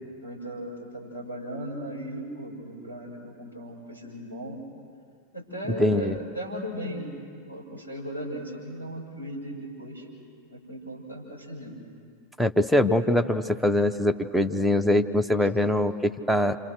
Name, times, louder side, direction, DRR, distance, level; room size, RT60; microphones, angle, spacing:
voice 1, 0.2-4.6 5.3-7.2 7.5-10.0 10.5-11.8, equal, 85° left, -3 dB, 7.1 m, -37 dB
voice 2, 5.8-6.2 12.4-16.6, left 1 dB, ahead, 4 dB, 1.0 m, -23 dB
29.0 x 27.0 x 6.5 m, 2.2 s
figure-of-eight pair, 90°, 0 cm